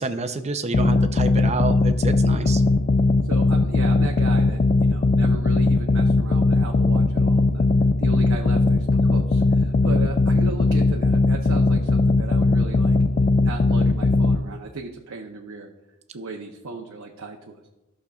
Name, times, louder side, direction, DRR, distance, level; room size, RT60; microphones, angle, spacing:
voice 1, 0.0-2.6, right 3 dB, 30° right, 8 dB, 0.6 m, -28 dB
sound 1, 0.7-14.4, left 3 dB, 35° left, 0.3 m, -19 dB
voice 2, 3.2-7.6 8.0-13.0 13.4-15.7 16.1-17.6, right 3 dB, 75° right, 1 dB, 0.8 m, -36 dB
14.0 x 6.5 x 2.4 m, 0.97 s
head